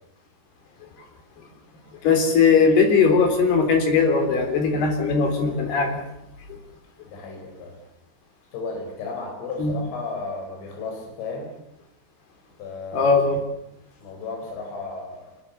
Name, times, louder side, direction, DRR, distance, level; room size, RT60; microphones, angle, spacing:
voice 1, 2.0-6.0 9.6-9.7 12.9-13.4, left 5 dB, 55° left, 4 dB, 5.5 m, -19 dB
voice 2, 7.0-7.8 8.5-11.5 12.6-13.1 14.0-15.4, left 3 dB, 80° left, 2 dB, 7.6 m, -34 dB
26.0 x 22.0 x 7.0 m, 0.80 s
omnidirectional pair, 5.7 m